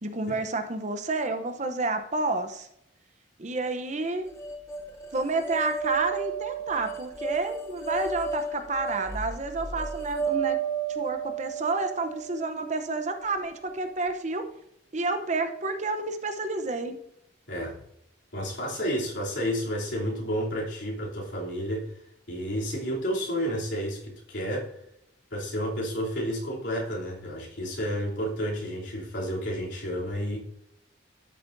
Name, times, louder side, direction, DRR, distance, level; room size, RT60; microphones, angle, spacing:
voice 1, 0.0-2.7 3.4-4.3 5.1-10.6 10.9-14.5 14.9-16.9, right 3 dB, 40° right, 7 dB, 0.8 m, -30 dB
sound 1, 4.4-13.5, right 5 dB, 15° left, 0.8 m, -33 dB
voice 2, 17.5-17.8 18.3-21.9 22.3-24.7 25.3-30.4, equal, 70° left, -4 dB, 3.1 m, -31 dB
12.5 x 7.3 x 2.7 m, 0.78 s
head